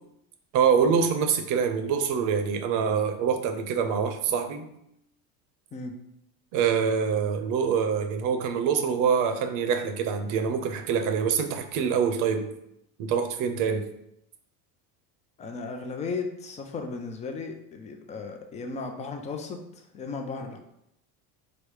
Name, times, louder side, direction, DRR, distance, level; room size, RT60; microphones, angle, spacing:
voice 1, 0.5-4.7 6.5-12.5 13.0-13.9, right 6 dB, 50° right, 8 dB, 0.7 m, -25 dB
voice 2, 15.4-20.6, left 4 dB, 20° left, 5 dB, 0.3 m, -35 dB
5.0 x 2.1 x 4.6 m, 0.78 s
supercardioid pair, 140°, 40 cm